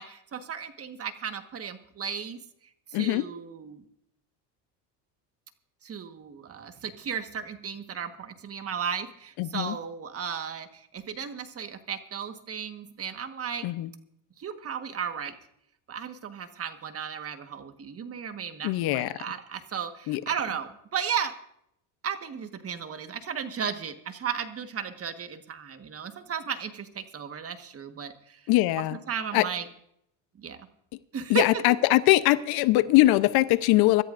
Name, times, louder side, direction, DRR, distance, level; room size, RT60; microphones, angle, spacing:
voice 1, 0.0-2.4 2.9-3.8 5.8-13.7 14.4-15.3 15.9-21.4 22.0-28.4 28.8-29.6 30.4-30.7 31.1-31.6, right 7 dB, 35° right, 8 dB, 1.5 m, -35 dB
voice 2, 2.9-3.3 9.4-9.8 13.6-13.9 18.6-19.1 20.1-20.2 28.5-29.0 29.3-29.5 31.3-34.0, left 17 dB, 65° left, 15 dB, 0.8 m, -22 dB
25.0 x 13.5 x 2.6 m, 0.74 s
supercardioid pair, 100°, 40 cm